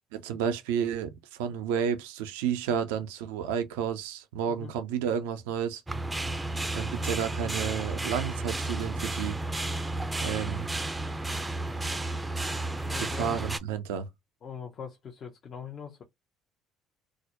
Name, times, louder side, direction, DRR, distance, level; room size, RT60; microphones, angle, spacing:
voice 1, 0.1-5.8 6.7-9.4 10.2-10.7 13.0-14.1, right 8 dB, 85° right, 0.4 m, -31 dB
sound 1, 5.9-13.6, right 2 dB, 15° right, 0.4 m, -32 dB
voice 2, 12.9-13.3 14.4-16.0, left 7 dB, 50° left, 0.6 m, -42 dB
2.3 x 2.0 x 2.9 m
hypercardioid pair, 60°, 0 cm